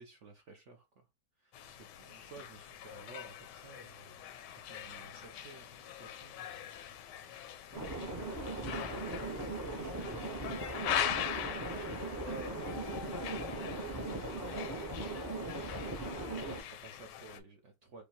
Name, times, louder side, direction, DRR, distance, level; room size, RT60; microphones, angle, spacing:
voice 1, 0.0-1.1 1.4-4.2 4.4-6.6 7.7-9.2 9.5-10.7 11.5-15.1 16.5-18.0, right 3 dB, 60° right, 0.8 m, -54 dB
sound 1, 1.5-17.4, left 10 dB, 80° left, 1.2 m, -42 dB
sound 2, 7.7-16.6, right 2 dB, 30° right, 0.3 m, -39 dB
5.1 x 2.2 x 2.9 m
omnidirectional pair, 1.8 m